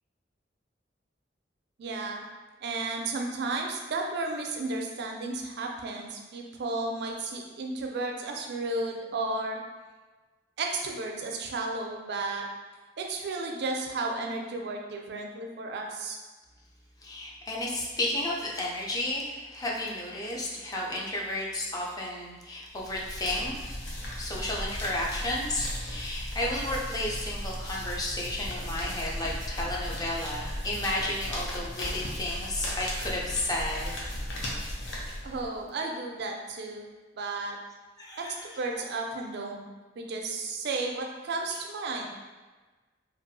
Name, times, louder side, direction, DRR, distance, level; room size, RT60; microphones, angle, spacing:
voice 1, 1.8-2.2 2.6-9.6 10.6-12.5 13.0-16.2 35.2-36.8 37.1-37.6 38.2-39.7 40.0-42.1, right 3 dB, 65° right, 1 dB, 0.4 m, -33 dB
voice 2, 17.0-33.9 38.0-38.4, left 1 dB, 20° left, -3 dB, 0.4 m, -32 dB
sound 1, 22.8-35.6, equal, 75° left, 0.6 m, -36 dB
2.6 x 2.3 x 2.6 m, 1.3 s
head